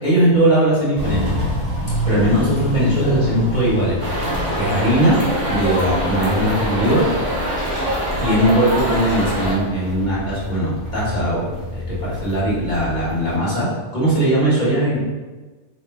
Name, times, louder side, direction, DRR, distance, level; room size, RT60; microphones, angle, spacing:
voice 1, 0.0-1.3 2.0-5.2 5.5-7.0 8.2-13.7 13.9-15.0, right 1 dB, 40° left, -9 dB, 1.7 m, -19 dB
Walk footsteps, 0.9-13.4, equal, 80° right, 1.7 m, -28 dB
sound 1, 4.0-9.5, equal, 40° right, 1.1 m, -23 dB
4.9 x 3.9 x 2.2 m, 1.3 s
omnidirectional pair, 1.2 m